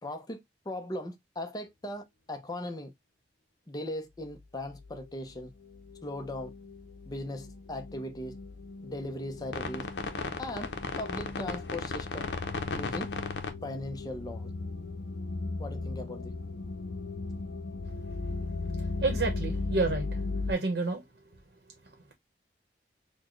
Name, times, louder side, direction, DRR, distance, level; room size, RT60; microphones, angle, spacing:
voice 1, 0.0-0.4 0.7-2.9 3.7-5.5 6.0-6.5 7.1-8.4 8.8-9.9 10.4-10.7 11.0-12.4 12.7-13.1 13.6-14.5 15.6-16.3, left 1 dB, 20° left, 0.6 m, -38 dB
sound 1, 4.7-5.0 5.3-20.5, left 3 dB, 80° left, 0.6 m, -36 dB
voice 2, 19.0-20.1 20.5-21.0, right 3 dB, 70° right, 0.9 m, -29 dB
4.1 x 2.2 x 3.0 m
head